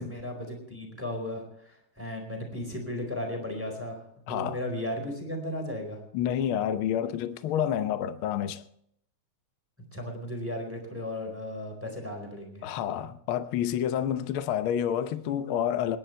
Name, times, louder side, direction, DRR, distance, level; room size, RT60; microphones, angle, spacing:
voice 1, 0.0-4.0 4.3-6.0 9.9-12.7, left 1 dB, 5° right, 4.1 m, -35 dB
voice 2, 4.3-4.6 6.1-8.6 12.6-16.0, left 9 dB, 75° left, 1.2 m, -29 dB
28.5 x 11.0 x 3.4 m
omnidirectional pair, 3.6 m